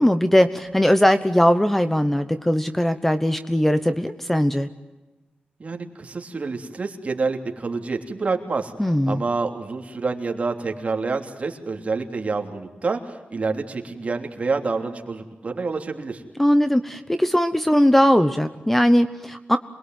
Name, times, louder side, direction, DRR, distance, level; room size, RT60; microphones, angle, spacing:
voice 1, 0.0-4.7 8.8-9.2 16.4-19.6, equal, 5° left, 10 dB, 1.0 m, -19 dB
voice 2, 5.6-8.7 9.1-16.2, right 4 dB, 40° right, 4 dB, 3.2 m, -27 dB
27.5 x 21.5 x 9.4 m, 1.1 s
wide cardioid pair, 145°, 3 cm